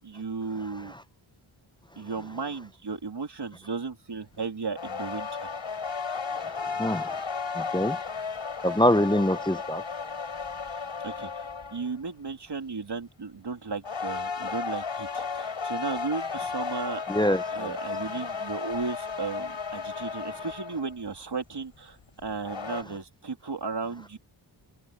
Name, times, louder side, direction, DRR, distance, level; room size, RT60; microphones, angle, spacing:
voice 1, 0.0-0.9 2.0-5.5 11.0-17.0 17.5-24.2, right 4 dB, 55° right, 3.1 m, -35 dB
sound 1, 4.7-11.9 13.8-20.9 22.2-22.8, left 5 dB, 70° left, 5.1 m, -34 dB
voice 2, 7.6-8.0 8.6-9.8 17.1-17.4, left 1 dB, 10° left, 0.6 m, -23 dB
open air
wide cardioid pair, 95°, 49 cm